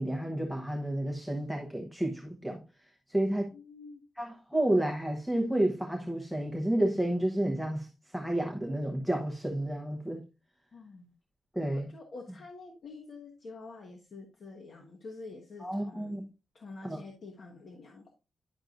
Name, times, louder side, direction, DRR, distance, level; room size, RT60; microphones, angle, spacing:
voice 1, 0.0-2.6 3.1-3.5 4.2-10.2 11.5-11.9 15.6-16.2 16.8-17.0, right 1 dB, ahead, 0.9 m, -30 dB
voice 2, 3.5-4.0 10.7-11.1 11.6-16.2 16.5-18.1, left 3 dB, 45° left, 1.2 m, -47 dB
10.5 x 6.3 x 2.6 m
wide cardioid pair, 180°, 0 cm